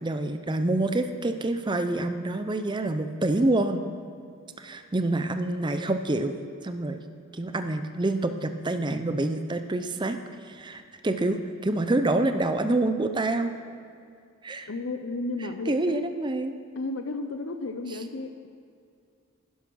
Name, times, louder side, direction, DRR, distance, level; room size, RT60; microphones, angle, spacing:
voice 1, 0.0-3.8 4.6-6.4 6.6-7.0 7.3-10.2 10.4-13.5 14.4-14.7 15.7-16.5 17.9-18.0, right 2 dB, 20° right, 8 dB, 0.5 m, -27 dB
voice 2, 14.7-16.0 16.8-18.5, left 2 dB, 60° left, 6 dB, 0.6 m, -33 dB
11.0 x 11.0 x 6.2 m, 2.3 s
head